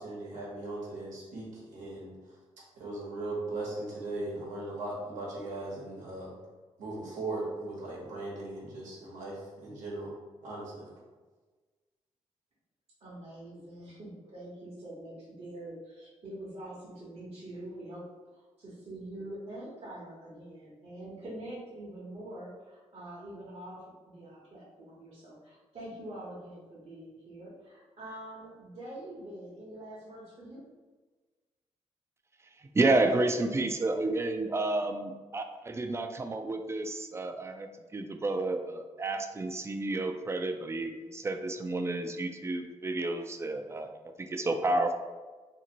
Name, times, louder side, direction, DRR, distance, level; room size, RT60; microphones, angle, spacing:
voice 1, 0.0-2.4 2.7-6.3 6.8-10.1 10.4-10.9, right 2 dB, 90° right, -5 dB, 1.0 m, -38 dB
voice 2, 13.0-30.6, right 1 dB, 55° right, -7 dB, 0.9 m, -45 dB
voice 3, 32.6-44.9, right 2 dB, 20° right, 6 dB, 0.3 m, -31 dB
2.6 x 2.4 x 2.8 m, 1.3 s
cardioid pair, 65°, 12 cm